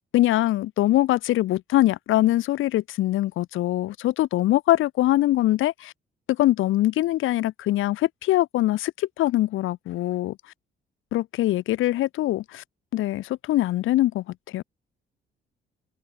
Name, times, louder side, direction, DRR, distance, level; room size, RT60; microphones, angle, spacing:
voice 1, 0.1-5.9 6.3-10.4 11.1-12.6 12.9-14.6, left 15 dB, 85° left, 2.6 m, -23 dB
cardioid pair, 90°, 20 cm